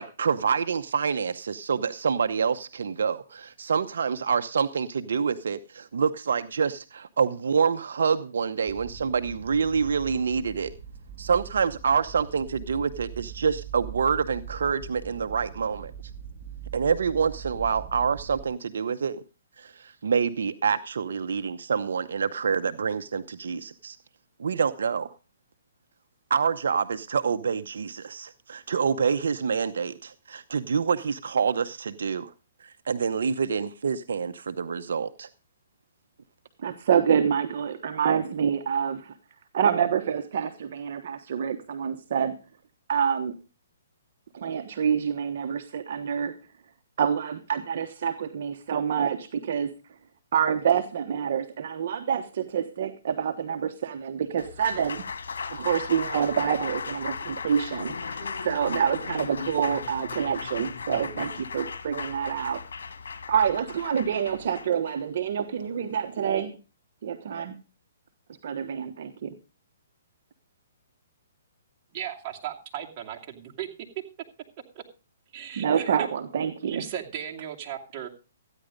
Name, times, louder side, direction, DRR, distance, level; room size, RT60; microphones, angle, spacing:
voice 1, 0.0-10.7 11.2-15.9 16.7-19.2 19.6-24.0 24.4-25.1 26.3-32.3 32.6-35.3, right 6 dB, 75° right, 0.8 m, -27 dB
sound 1, 8.7-18.5, right 7 dB, 15° right, 3.0 m, -42 dB
voice 2, 36.6-39.1 39.5-42.3 42.9-43.3 44.3-46.3 47.0-49.7 50.3-55.0 55.5-62.6 63.3-66.6 67.0-67.6 68.4-69.3 75.6-76.8, right 8 dB, 55° right, 1.2 m, -27 dB
Applause, 54.2-66.5, left 5 dB, 80° left, 1.9 m, -37 dB
sound 2, 54.4-63.4, left 4 dB, 30° left, 5.4 m, -48 dB
voice 3, 71.9-73.7 74.7-74.8 75.3-76.0 76.6-78.1, right 10 dB, 30° right, 2.6 m, -36 dB
14.5 x 10.0 x 5.2 m
hypercardioid pair, 150°, 0 cm